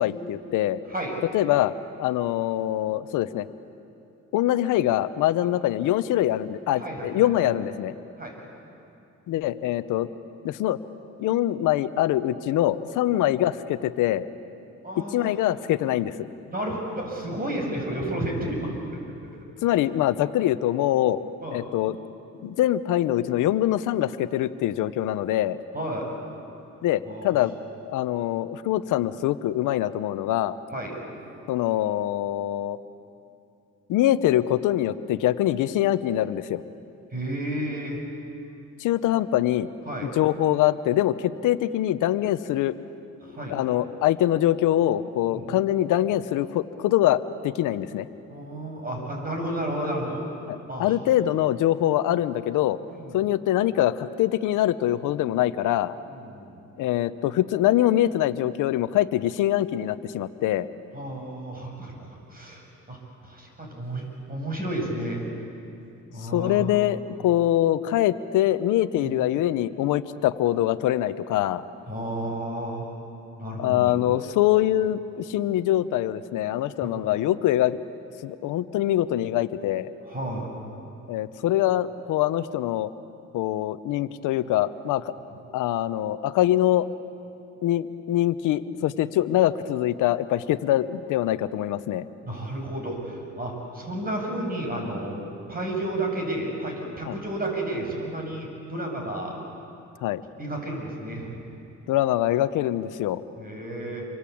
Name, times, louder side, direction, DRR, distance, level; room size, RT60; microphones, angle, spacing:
voice 1, 0.0-0.8 1.3-1.7 2.0-3.5 4.3-7.9 9.3-10.1 10.4-10.8 11.2-14.3 15.1-16.1 19.6-21.2 21.5-22.0 22.4-25.6 26.8-27.5 27.9-30.5 31.5-32.8 33.9-36.6 38.8-39.7 40.0-42.7 43.5-48.1 50.5-52.8 53.1-55.9 56.8-60.7 66.2-71.6 73.6-77.8 78.2-79.9 81.1-82.9 83.3-85.1 85.5-86.9 87.6-92.0 97.0-97.2 100.0-100.2 101.9-103.2, left 13 dB, 90° left, 13 dB, 0.9 m, -24 dB
voice 2, 6.7-7.3 8.2-8.3 13.0-13.2 14.8-15.3 16.5-18.7 21.4-21.6 25.7-26.0 27.1-27.3 30.7-30.9 37.1-38.0 39.9-40.1 43.2-43.6 45.3-45.5 48.3-50.2 50.7-51.1 52.9-53.2 56.1-56.7 60.9-63.0 63.2-65.2 66.1-66.6 69.0-69.1 71.9-72.9 73.4-74.2 76.8-76.9 80.1-80.5 85.3-85.4 92.2-95.2 95.5-99.4 100.4-101.4 103.4-104.1, right 1 dB, 30° right, 1 dB, 7.9 m, -32 dB
28.0 x 24.0 x 8.6 m, 2.7 s
cardioid pair, 90°, 30 cm